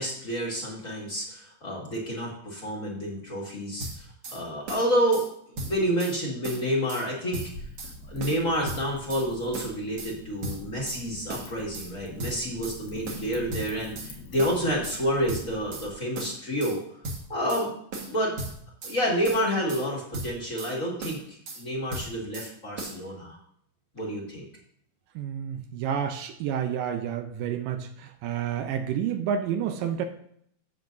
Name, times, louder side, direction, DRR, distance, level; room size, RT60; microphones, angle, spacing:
voice 1, 0.0-4.1 4.3-7.4 8.1-16.8 17.3-17.7 18.0-18.3 18.8-21.2 21.5-23.4 23.9-24.5, equal, 30° left, -3 dB, 1.6 m, -29 dB
sound 1, 3.8-4.4 4.7-5.3 5.6-6.2 6.4-7.1 7.3-7.9 8.2-9.3 9.5-10.1 10.4-11.0 11.3-11.9 12.2-12.8 13.1-14.1 14.4-15.0 15.3-15.9 16.2-16.8 17.0-17.7 17.9-19.0 19.2-19.9 20.1-20.7 21.0-21.6 21.9-22.5 22.8-23.0, right 2 dB, 50° right, 2.2 m, -37 dB
Wind / Fire, 7.3-15.9, left 2 dB, 85° left, 3.4 m, -45 dB
voice 2, 25.2-30.1, right 8 dB, 80° right, 7 dB, 2.2 m, -30 dB
15.5 x 6.5 x 2.7 m, 0.68 s
omnidirectional pair, 4.1 m